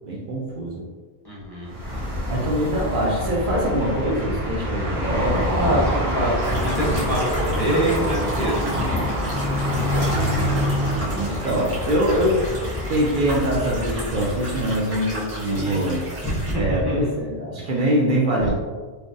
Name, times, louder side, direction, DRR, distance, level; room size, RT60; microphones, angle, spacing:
voice 1, 0.1-0.8 2.3-5.8 11.1-12.4 12.9-16.2 16.5-18.5, right 1 dB, 60° right, -3 dB, 0.6 m, -23 dB
voice 2, 1.2-1.7 5.3-9.2 9.7-10.3 15.5-17.2 17.6-17.7 18.4-18.5, right 1 dB, 25° left, -8 dB, 0.7 m, -26 dB
sound 1, 1.6-14.9, left 1 dB, 85° right, 1.1 m, -26 dB
sound 2, 6.4-16.5, right 1 dB, 35° right, 1.1 m, -34 dB
3.3 x 2.0 x 2.5 m, 1.4 s
omnidirectional pair, 1.0 m